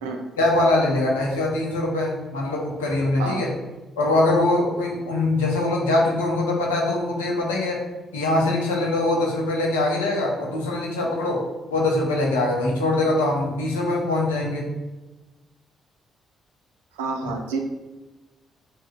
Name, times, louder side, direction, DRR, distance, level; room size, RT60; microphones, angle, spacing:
voice 1, 0.4-3.5 4.0-7.8 8.1-11.4 11.7-14.7, left 2 dB, 85° left, -2 dB, 0.6 m, -22 dB
voice 2, 17.0-17.6, right 4 dB, 85° right, 3 dB, 0.4 m, -28 dB
2.8 x 2.3 x 3.2 m, 1.1 s
hypercardioid pair, 45°, 0 cm